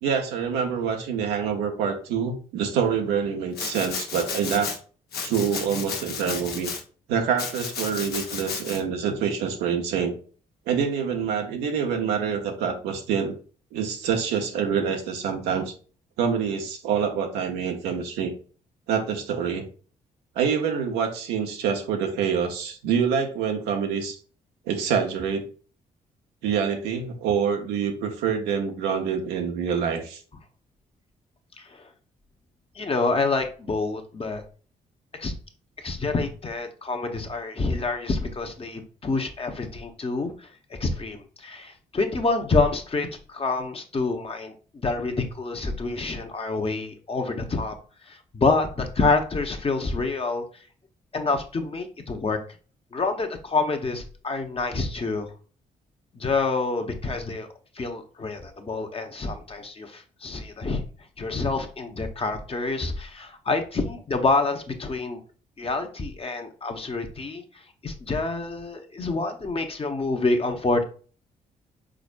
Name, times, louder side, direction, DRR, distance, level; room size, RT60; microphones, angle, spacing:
voice 1, 0.0-4.7 5.2-6.7 7.1-10.2 10.7-13.4 13.7-15.7 16.2-18.3 18.9-19.7 20.4-24.2 24.7-25.4 26.4-30.2, right 7 dB, 85° right, 3 dB, 0.8 m, -26 dB
Domestic sounds home sounds, 3.5-4.8 5.1-6.8 7.4-8.8, left 6 dB, 70° left, 0.9 m, -33 dB
voice 2, 31.6-31.9 32.8-34.4 35.2-35.3 35.8-40.5 40.8-44.5 44.8-47.7 48.1-50.4 51.1-52.4 52.9-55.3 56.1-57.5 57.8-60.8 61.2-65.2 65.6-67.4 67.8-70.8, left 3 dB, 35° left, 5 dB, 1.0 m, -27 dB
5.0 x 4.2 x 2.4 m, 0.39 s
supercardioid pair, 55°, 17 cm